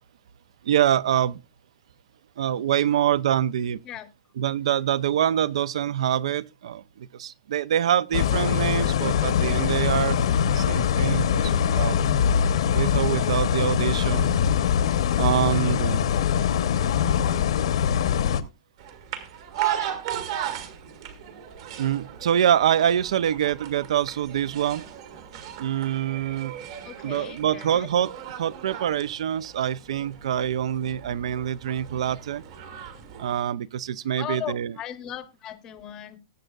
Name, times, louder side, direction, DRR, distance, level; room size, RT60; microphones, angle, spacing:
voice 1, 0.6-1.4 2.4-3.8 4.4-10.2 10.4-12.0 12.7-14.3 15.2-16.1 21.8-24.8 25.6-26.6 27.0-28.1 28.4-32.4 33.2-34.7, right 10 dB, 70° right, 0.4 m, -25 dB
sound 1, 8.1-18.4, left 8 dB, 65° left, 0.8 m, -23 dB
sound 2, 18.8-33.3, right 10 dB, 50° right, 1.8 m, -36 dB
voice 2, 26.8-27.9 34.2-36.2, left 11 dB, 20° left, 0.7 m, -37 dB
19.5 x 7.9 x 2.3 m
supercardioid pair, 180°, 3 cm